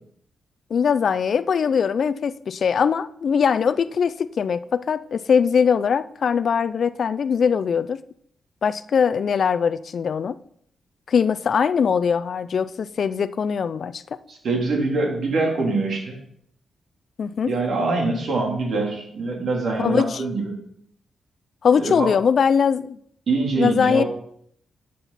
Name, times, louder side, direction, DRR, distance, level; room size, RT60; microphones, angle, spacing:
voice 1, 0.7-8.0 8.6-10.4 11.1-14.2 17.2-17.5 19.8-20.2 21.6-23.0 23.6-24.0, left 6 dB, 60° left, 15 dB, 0.5 m, -21 dB
voice 2, 14.3-16.2 17.5-20.6 21.8-22.1 23.3-24.0, right 3 dB, 65° right, 0 dB, 3.4 m, -24 dB
12.0 x 7.6 x 4.2 m, 0.66 s
cardioid pair, 90°, 0 cm